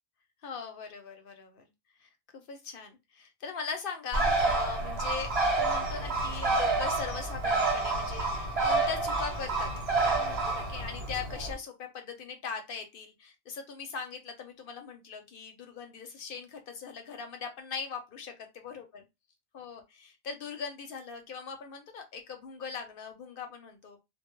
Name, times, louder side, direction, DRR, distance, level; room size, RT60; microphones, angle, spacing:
voice 1, 0.4-1.7 2.0-19.0 19.5-24.0, left 5 dB, 65° left, 5 dB, 0.7 m, -40 dB
Bird, 4.1-11.5, right 3 dB, 70° right, 1.1 m, -29 dB
2.2 x 2.0 x 3.0 m, 0.23 s
omnidirectional pair, 1.1 m